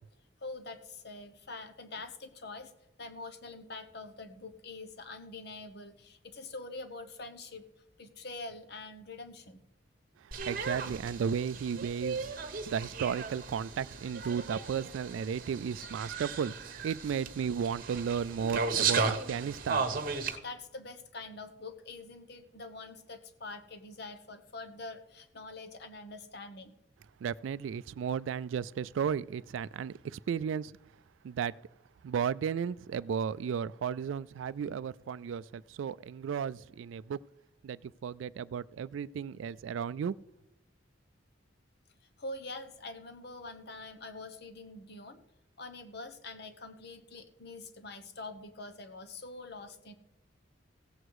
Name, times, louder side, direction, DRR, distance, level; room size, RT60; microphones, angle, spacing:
voice 1, 0.4-2.7 3.0-7.7 8.0-9.6 20.4-26.7 42.2-45.2 45.6-49.9, left 3 dB, 55° left, 1.1 m, -45 dB
voice 2, 10.2-16.5 16.8-19.9 27.2-30.7 31.2-31.5 32.0-37.2 37.6-40.2, right 7 dB, 80° right, 0.3 m, -34 dB
sound 1, 10.3-20.4, right 5 dB, 45° right, 1.2 m, -35 dB
15.5 x 8.0 x 4.8 m
head